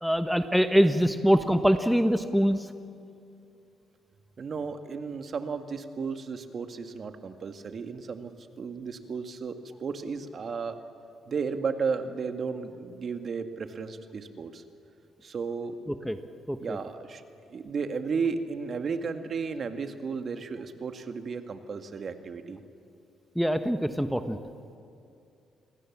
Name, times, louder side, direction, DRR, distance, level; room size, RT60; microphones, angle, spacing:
voice 1, 0.0-2.6 16.0-16.2 16.5-16.8 23.4-24.4, equal, ahead, 8 dB, 1.2 m, -24 dB
voice 2, 4.4-8.3 8.6-10.8 11.3-14.6 15.2-15.8 16.6-17.2 17.5-22.6, right 5 dB, 50° right, 7 dB, 1.9 m, -34 dB
28.5 x 22.0 x 7.4 m, 2.6 s
cardioid pair, 90°, 0 cm